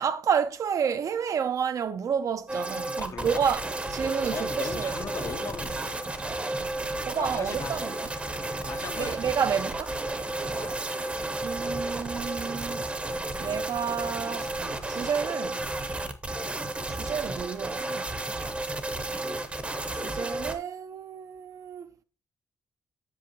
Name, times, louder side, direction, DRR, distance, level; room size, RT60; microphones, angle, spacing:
voice 1, 0.0-3.6 3.9-4.9 7.0-7.9 9.0-10.0 11.4-12.9 13.4-15.7 17.0-18.1 20.0-21.9, right 7 dB, 55° right, 0.5 m, -30 dB
sound 1, 2.5-20.6, right 2 dB, 20° right, 0.7 m, -32 dB
voice 2, 3.0-3.4 4.3-6.4 7.1-7.8 8.7-9.3 10.5-10.8, left 6 dB, 50° left, 0.7 m, -38 dB
7.7 x 7.0 x 2.9 m
wide cardioid pair, 155°, 7 cm